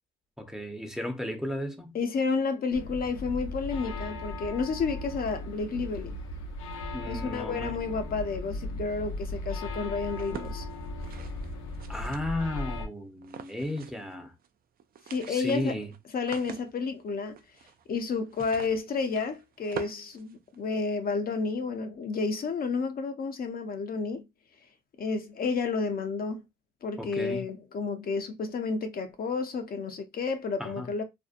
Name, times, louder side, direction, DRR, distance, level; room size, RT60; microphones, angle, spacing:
voice 1, 0.4-2.0 6.9-7.7 11.9-14.3 15.3-15.9 27.0-27.5 30.6-30.9, left 1 dB, 5° right, 0.6 m, -34 dB
voice 2, 1.9-6.2 7.0-10.7 15.1-15.7 16.1-17.4 17.9-24.2 25.0-26.4 26.8-31.0, left 4 dB, 50° left, 0.5 m, -31 dB
sound 1, 2.7-12.9, left 1 dB, 90° left, 0.7 m, -37 dB
sound 2, 10.1-12.6 13.2-14.1 14.4-14.5 14.8-20.9, right 8 dB, 50° right, 0.4 m, -45 dB
2.6 x 2.1 x 2.4 m
cardioid pair, 90°, 20 cm